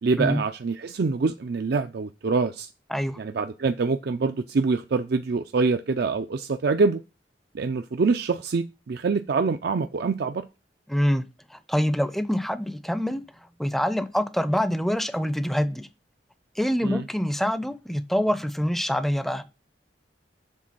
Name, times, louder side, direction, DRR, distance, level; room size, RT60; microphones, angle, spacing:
voice 1, 0.0-2.7 3.2-7.0 7.5-10.4 16.8-17.0, right 4 dB, 65° right, 0.5 m, -25 dB
voice 2, 10.9-11.2 11.5-13.2 13.6-15.9 16.6-19.4, equal, ahead, 0.5 m, -25 dB
7.5 x 3.8 x 5.7 m
head